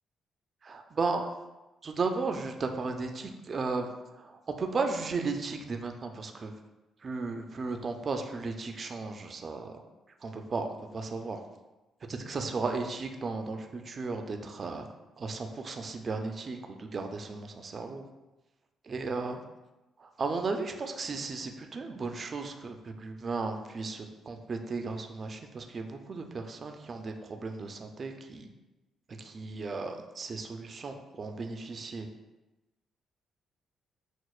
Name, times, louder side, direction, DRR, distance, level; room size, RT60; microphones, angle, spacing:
voice 1, 0.6-1.3 1.8-3.9 4.2-4.3 4.6-6.5 7.0-9.7 10.2-10.7 10.9-11.4 12.1-14.8 15.2-18.0 18.9-19.4 20.0-28.5 29.2-32.1, right 4 dB, 40° right, 5 dB, 0.4 m, -35 dB
6.1 x 2.1 x 2.3 m, 1.1 s
cardioid pair, 90°, 0 cm